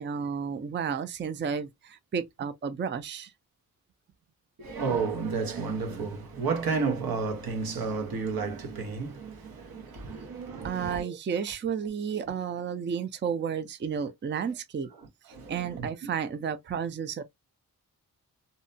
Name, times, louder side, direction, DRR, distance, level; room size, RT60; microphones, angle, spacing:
voice 1, 0.0-3.3 10.6-14.9 15.3-17.2, right 7 dB, 35° right, 0.4 m, -32 dB
voice 2, 4.6-11.1 15.3-15.9, right 5 dB, 80° right, 0.9 m, -32 dB
2.7 x 2.1 x 2.5 m
cardioid pair, 60°, 35 cm